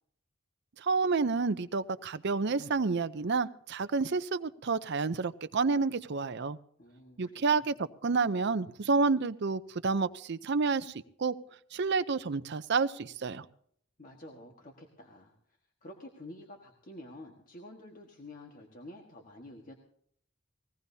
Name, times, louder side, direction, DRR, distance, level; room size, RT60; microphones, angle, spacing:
voice 1, 0.8-6.6 7.2-10.9 11.2-11.3 11.7-13.4, right 4 dB, 55° right, 13 dB, 0.6 m, -29 dB
voice 2, 6.8-7.7 14.0-19.7, left 1 dB, 40° left, 1 dB, 1.6 m, -49 dB
21.0 x 17.0 x 2.8 m, 0.65 s
head